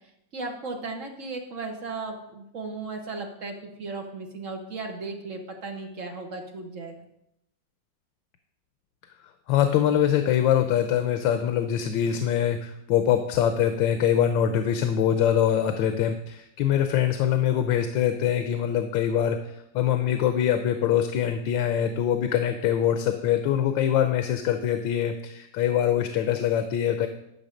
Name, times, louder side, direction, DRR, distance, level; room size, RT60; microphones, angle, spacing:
voice 1, 0.3-6.9, right 3 dB, 45° right, 3 dB, 1.4 m, -36 dB
voice 2, 9.5-27.1, left 10 dB, 90° left, 7 dB, 1.4 m, -24 dB
11.0 x 5.9 x 5.1 m, 0.82 s
omnidirectional pair, 2.0 m